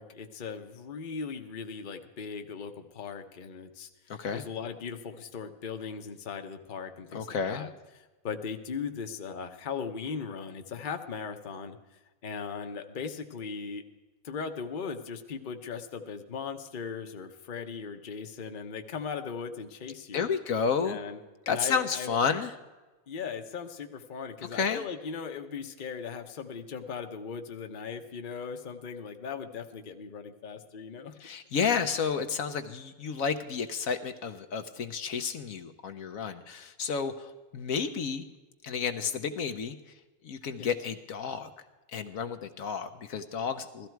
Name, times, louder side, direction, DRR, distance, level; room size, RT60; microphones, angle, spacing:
voice 1, 0.0-7.7 8.2-13.8 14.2-20.3 20.9-21.2 21.5-22.2 23.1-31.1 40.6-40.7, left 6 dB, 40° left, 6 dB, 1.0 m, -38 dB
voice 2, 4.1-4.4 7.1-7.7 20.1-21.0 21.5-22.5 24.5-24.8 31.2-38.2 38.6-40.0 40.2-41.5 41.9-43.9, left 6 dB, 70° left, 7 dB, 1.2 m, -31 dB
16.5 x 13.5 x 4.6 m, 1.2 s
omnidirectional pair, 1.5 m